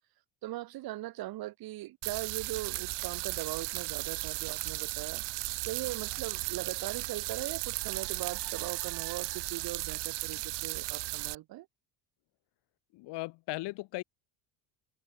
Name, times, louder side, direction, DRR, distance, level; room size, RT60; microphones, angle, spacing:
voice 1, 0.4-5.2 5.6-11.7, right 16 dB, 60° right, 4.8 m, -40 dB
sound 1, 2.0-11.4, right 22 dB, 85° right, 2.9 m, -36 dB
voice 2, 12.9-14.0, left 21 dB, 75° left, 3.9 m, -37 dB
open air
cardioid pair, 170°, 41 cm